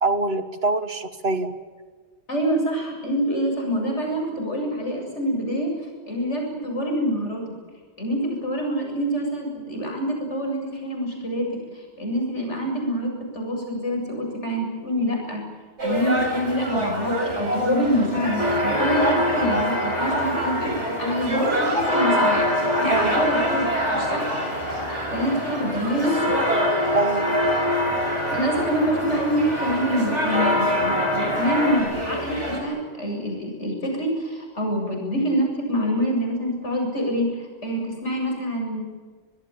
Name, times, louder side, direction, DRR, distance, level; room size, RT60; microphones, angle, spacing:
voice 1, 0.0-1.6 22.9-23.1 26.9-27.4, right 2 dB, 60° right, 10 dB, 1.9 m, -24 dB
voice 2, 2.3-5.7 6.1-7.4 8.0-15.4 15.8-22.4 22.8-23.7 23.9-24.3 25.1-26.2 28.3-38.8, equal, 85° left, 1 dB, 7.9 m, -26 dB
sound 1, 15.8-32.6, equal, 90° right, 6.5 m, -28 dB
sound 2, 18.4-31.8, left 1 dB, 35° left, 5.7 m, -25 dB
25.0 x 20.5 x 8.9 m, 1.5 s
omnidirectional pair, 1.2 m